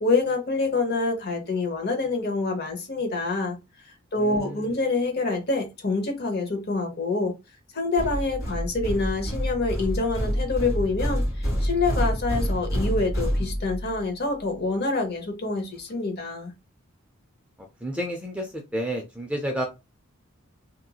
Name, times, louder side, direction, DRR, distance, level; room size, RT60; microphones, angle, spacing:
voice 1, 0.0-3.6 4.1-7.3 7.7-16.5, left 3 dB, 45° left, 0.9 m, -26 dB
voice 2, 4.2-4.7 17.8-19.6, equal, 5° right, 0.4 m, -30 dB
sound 1, 8.0-14.0, equal, 15° left, 1.7 m, -27 dB
2.9 x 2.6 x 2.3 m
head